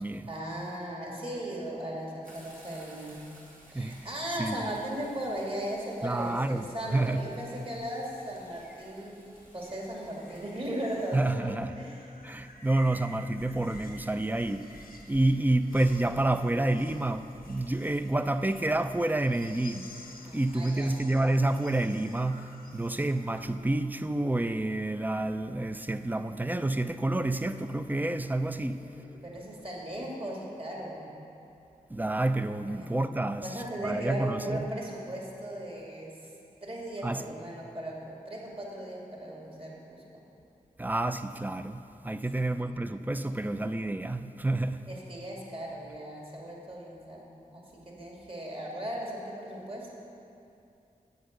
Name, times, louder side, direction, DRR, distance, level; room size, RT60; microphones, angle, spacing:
voice 1, 0.3-3.2 3.7-9.3 9.5-12.0 20.3-20.9 28.6-31.1 32.7-32.9 33.4-36.2 36.6-40.2 42.3-43.5 44.9-49.9, right 1 dB, 40° right, -3 dB, 2.2 m, -38 dB
sound 1, 2.2-11.3, right 1 dB, 65° right, 2.2 m, -55 dB
voice 2, 3.7-4.1 4.4-4.7 6.0-7.3 11.1-11.7 12.2-28.8 31.9-34.6 37.0-37.2 40.8-44.9, right 2 dB, 10° right, 10 dB, 0.4 m, -29 dB
sound 2, 7.2-23.6, left 2 dB, 90° left, 1.0 m, -52 dB
8.0 x 7.8 x 6.5 m, 2.7 s
cardioid pair, 40°, 15 cm